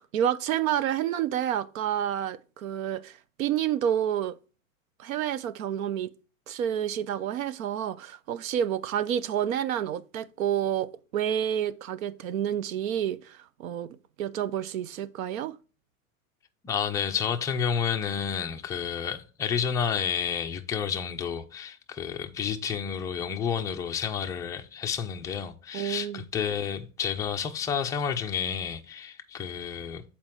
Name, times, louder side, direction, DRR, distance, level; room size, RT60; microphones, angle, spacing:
voice 1, 0.1-4.4 5.0-6.1 6.5-13.9 14.2-15.5 25.7-26.2, right 10 dB, 75° right, 0.8 m, -29 dB
voice 2, 16.6-30.0, left 7 dB, 10° left, 0.3 m, -30 dB
7.5 x 4.4 x 4.5 m
hypercardioid pair, 125°, 41 cm